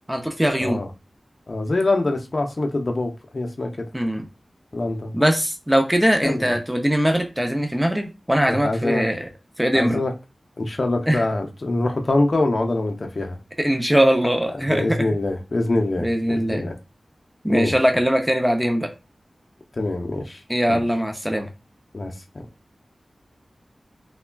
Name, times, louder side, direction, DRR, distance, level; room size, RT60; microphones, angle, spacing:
voice 1, 0.1-0.8 3.9-4.3 5.1-9.3 9.6-10.0 11.1-11.2 13.6-15.2 16.0-16.7 17.4-18.9 20.5-21.5, equal, 5° right, 0.5 m, -21 dB
voice 2, 1.5-3.9 4.7-5.1 6.2-6.5 8.5-9.1 9.7-10.1 10.6-13.4 14.7-16.8 17.5-17.7 19.8-20.4 20.7-20.8 21.9-22.1, left 2 dB, 50° left, 0.5 m, -24 dB
3.5 x 2.1 x 2.2 m
wide cardioid pair, 70°, 0 cm